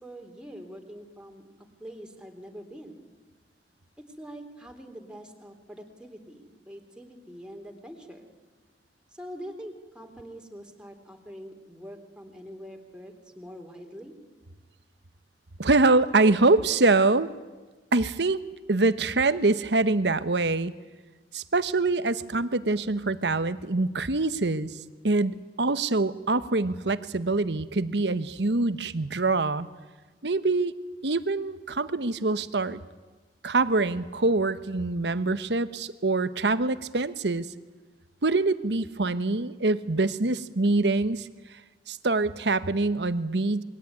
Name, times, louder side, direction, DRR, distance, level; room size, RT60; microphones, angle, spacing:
voice 1, 0.0-1.4 1.8-3.0 4.2-8.3 9.1-14.2, equal, 5° right, 2 dB, 3.5 m, -44 dB
voice 2, 15.6-17.3 17.9-18.4 18.7-20.7 21.3-24.8 25.0-29.7 30.2-30.7 31.0-32.8 33.4-37.5 38.2-41.3 41.9-43.6, right 3 dB, 70° right, 13 dB, 1.1 m, -24 dB
28.0 x 22.0 x 9.6 m, 1.3 s
head